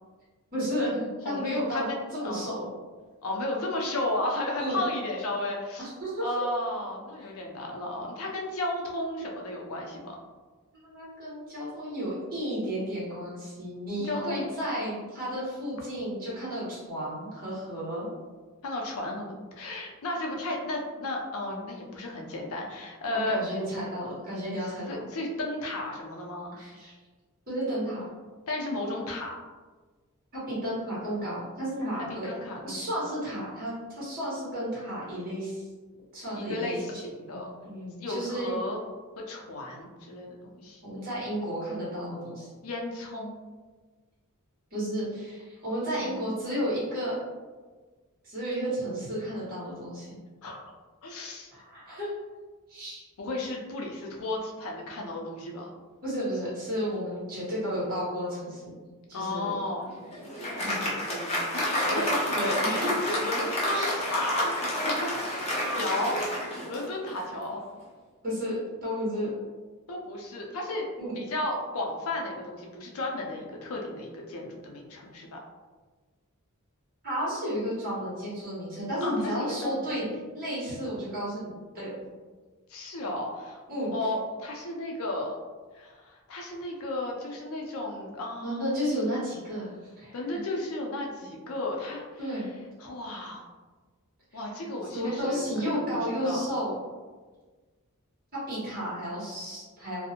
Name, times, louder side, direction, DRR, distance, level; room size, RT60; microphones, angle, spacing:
voice 1, 0.5-1.9 2.1-2.7 4.6-4.8 6.0-6.3 10.7-18.1 23.3-25.0 26.5-26.9 27.5-28.0 30.3-32.3 32.6-35.6 36.1-36.7 37.3-38.6 40.8-42.5 44.7-47.2 48.2-50.2 51.5-52.1 52.7-53.0 56.0-59.5 60.6-60.8 61.9-62.1 62.3-63.1 63.7-63.9 65.5-65.6 68.2-69.3 71.0-71.1 77.0-80.0 80.3-81.9 83.7-83.9 88.4-90.4 92.2-92.5 94.3-94.4 94.9-96.7 98.3-100.1, equal, 45° right, -8 dB, 1.1 m, -32 dB
voice 2, 1.3-2.5 3.2-5.9 6.2-10.2 14.0-14.8 18.6-23.5 24.9-26.6 28.5-29.4 32.1-32.8 36.3-37.5 38.0-38.8 39.2-40.8 42.6-43.4 46.0-46.5 50.4-50.7 51.0-51.5 53.2-55.7 59.1-59.8 60.6-62.0 62.4-64.7 65.0-65.1 65.8-66.2 66.7-67.6 69.9-70.9 71.2-75.4 79.0-80.1 82.7-83.6 83.9-85.4 85.7-88.7 90.1-92.0 92.4-92.5 92.8-93.5 94.3-95.9 96.2-96.5, left 1 dB, 65° left, 0 dB, 0.5 m, -34 dB
Applause, 59.8-67.3, left 1 dB, 30° left, 0.6 m, -30 dB
2.5 x 2.0 x 2.8 m, 1.3 s
head